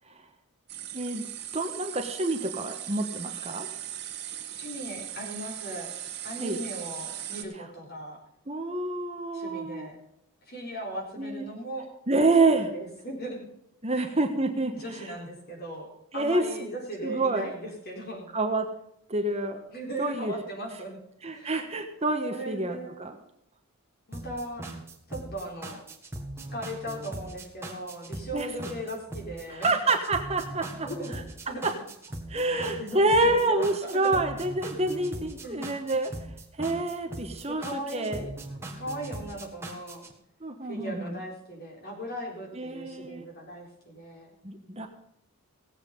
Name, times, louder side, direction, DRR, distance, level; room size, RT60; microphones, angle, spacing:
sound 1, 0.7-7.4, right 11 dB, 50° right, 1.8 m, -39 dB
voice 1, 1.5-3.7 6.4-6.6 8.5-9.9 11.2-11.4 12.1-12.7 13.8-14.7 16.1-16.4 17.0-17.5 18.3-18.7 19.1-19.6 20.0-20.3 21.2-23.1 28.3-28.5 29.5-30.9 31.6-31.7 32.3-36.1 36.6-38.2 40.4-41.2 42.6-43.2 44.4-44.9, right 2 dB, 30° right, 4 dB, 1.2 m, -27 dB
voice 2, 4.6-5.9 6.2-8.2 9.3-10.0 10.5-11.9 12.6-13.5 13.9-14.1 14.7-18.3 19.7-21.0 21.3-21.5 22.3-23.0 24.1-24.7 25.1-25.8 26.5-29.7 30.8-31.6 32.5-34.2 35.4-36.0 37.5-38.3 38.8-40.1 40.7-44.3, right 1 dB, 45° left, 0 dB, 4.2 m, -38 dB
sound 2, 24.1-40.1, right 1 dB, 10° right, 1.7 m, -40 dB
17.5 x 8.2 x 5.3 m, 0.79 s
head